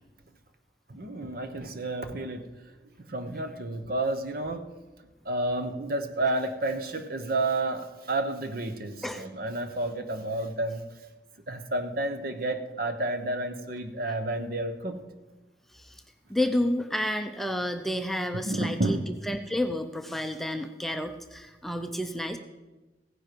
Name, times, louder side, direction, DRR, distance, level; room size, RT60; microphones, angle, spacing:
voice 1, 0.9-2.5 3.1-4.7 5.2-10.8 11.5-15.0 18.3-19.1, right 2 dB, 55° right, 8 dB, 1.0 m, -30 dB
voice 2, 16.3-22.4, left 1 dB, ahead, 6 dB, 0.6 m, -30 dB
15.5 x 10.0 x 4.6 m, 1.1 s
head